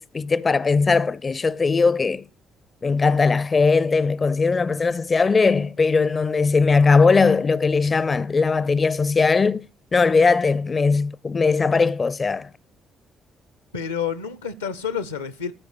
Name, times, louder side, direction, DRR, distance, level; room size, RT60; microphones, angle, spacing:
voice 1, 0.0-2.3 2.8-9.6 9.9-12.5, left 4 dB, 35° left, 0.4 m, -19 dB
voice 2, 13.7-15.5, left 7 dB, 85° left, 0.6 m, -29 dB
13.5 x 4.7 x 8.5 m
figure-of-eight pair, 45°, 0 cm